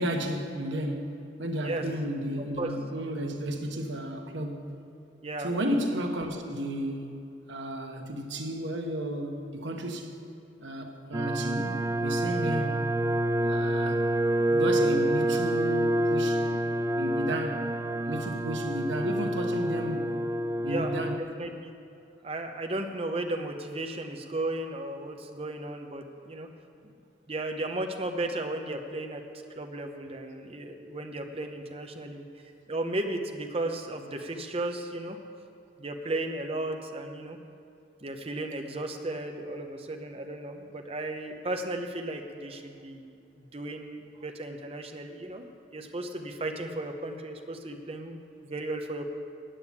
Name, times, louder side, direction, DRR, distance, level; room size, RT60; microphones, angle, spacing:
voice 1, 0.0-4.7 5.4-7.2 7.5-10.1 10.6-12.9 13.5-14.0 14.5-16.5 17.0-17.7 18.1-20.2 20.6-21.3, right 1 dB, 80° right, 1.1 m, -33 dB
sound 1, 11.1-21.2, right 1 dB, 15° right, 0.3 m, -28 dB
voice 2, 21.4-21.7 22.2-26.5 27.3-29.2 29.6-32.2 32.7-35.2 35.8-37.4 38.0-43.1 43.5-45.4 45.7-49.1, right 2 dB, 30° right, 0.8 m, -35 dB
8.8 x 8.8 x 8.4 m
head